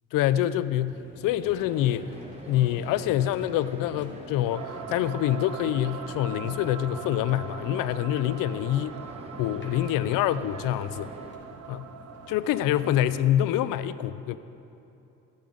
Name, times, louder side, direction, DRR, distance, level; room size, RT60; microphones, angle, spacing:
voice 1, 0.1-2.1 2.4-9.0 9.4-11.1 11.7-11.9 12.3-14.4, left 12 dB, 85° left, 15 dB, 0.5 m, -26 dB
sound 1, 0.8-13.7, left 2 dB, 35° left, 2.2 m, -50 dB
sound 2, 1.4-11.3, right 2 dB, 20° right, 1.2 m, -45 dB
sound 3, 4.5-13.3, right 7 dB, 55° right, 0.6 m, -42 dB
15.0 x 8.3 x 3.9 m, 2.9 s
cardioid pair, 75°, 32 cm